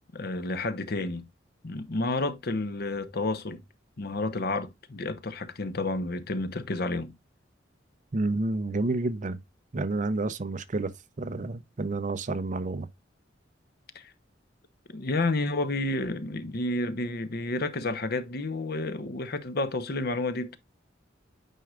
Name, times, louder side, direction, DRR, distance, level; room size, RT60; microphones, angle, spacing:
voice 1, 0.1-1.3 1.6-3.6 4.0-7.1 13.9-14.1 14.9-20.6, left 2 dB, 60° left, 0.9 m, -30 dB
voice 2, 8.1-9.4 9.7-10.9 11.2-12.9, right 2 dB, 45° right, 0.6 m, -29 dB
9.1 x 4.7 x 2.4 m
head